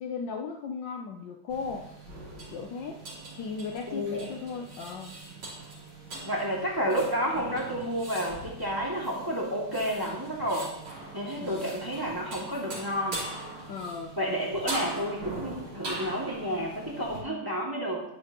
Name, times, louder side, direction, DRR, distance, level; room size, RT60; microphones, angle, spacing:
voice 1, 0.0-1.9 2.5-3.0 3.4-5.1 11.4-11.7 13.7-14.2, left 5 dB, 70° left, 3 dB, 1.3 m, -36 dB
sound 1, 1.5-17.2, right 2 dB, 80° right, 4.5 m, -41 dB
voice 2, 3.9-4.2 6.2-10.7 11.1-13.2 14.2-18.0, equal, 10° right, -4 dB, 2.2 m, -30 dB
12.0 x 11.0 x 3.0 m, 0.81 s
omnidirectional pair, 2.3 m